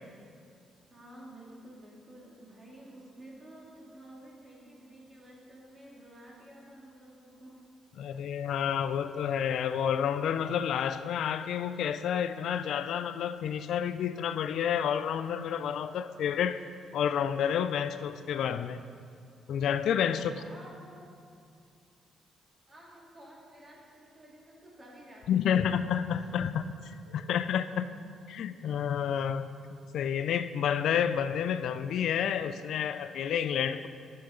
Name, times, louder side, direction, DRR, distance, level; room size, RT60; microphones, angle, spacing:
voice 1, 0.9-7.6 8.2-8.5 20.1-21.1 22.7-25.6 27.0-27.4, right 1 dB, 25° right, -4 dB, 2.3 m, -52 dB
voice 2, 8.0-16.6 16.9-18.8 19.5-20.4 25.3-27.9 28.3-29.5 29.9-33.9, left 8 dB, 75° left, 12 dB, 0.3 m, -30 dB
10.5 x 6.6 x 3.8 m, 2.4 s
cardioid pair, 90°, 0 cm